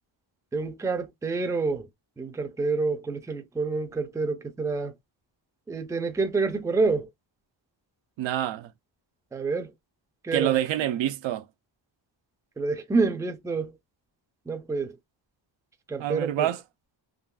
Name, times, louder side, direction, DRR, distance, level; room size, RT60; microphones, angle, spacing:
voice 1, 0.5-1.9 2.2-4.9 5.7-7.1 9.3-9.7 10.2-10.5 12.6-13.7 14.5-15.0 15.9-16.5, right 4 dB, 5° right, 0.4 m, -28 dB
voice 2, 8.2-8.7 10.3-11.4 16.0-16.6, right 12 dB, 70° right, 0.5 m, -26 dB
3.7 x 2.2 x 2.2 m
cardioid pair, 125°, 48 cm